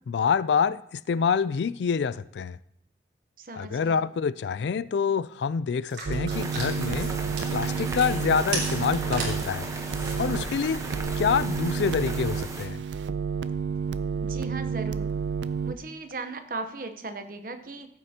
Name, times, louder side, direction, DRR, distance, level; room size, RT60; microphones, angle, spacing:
voice 1, 0.1-2.6 3.6-7.1 7.5-9.7 10.2-10.8 11.2-12.8, left 6 dB, 75° left, 0.3 m, -26 dB
voice 2, 3.4-4.1 14.2-15.1 15.6-17.9, right 3 dB, 50° right, 0.9 m, -37 dB
sound 1, 5.9-11.0, right 3 dB, 70° right, 3.6 m, -38 dB
sound 2, 6.1-15.7, right 6 dB, 90° right, 0.5 m, -30 dB
sound 3, 6.3-12.7, right 2 dB, 20° right, 0.9 m, -37 dB
15.0 x 8.4 x 2.9 m
head